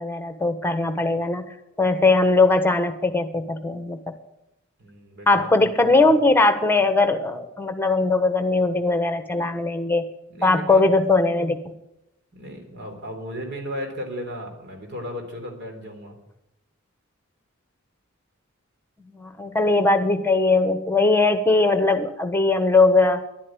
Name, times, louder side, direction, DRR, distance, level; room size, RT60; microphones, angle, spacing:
voice 1, 0.0-1.4 1.8-4.0 5.3-10.0 10.4-11.6 19.2-23.2, left 3 dB, 10° left, 7 dB, 1.2 m, -20 dB
voice 2, 4.8-6.1 10.3-10.9 12.3-16.2, equal, 55° right, 3 dB, 3.9 m, -35 dB
11.5 x 10.5 x 9.1 m, 0.87 s
head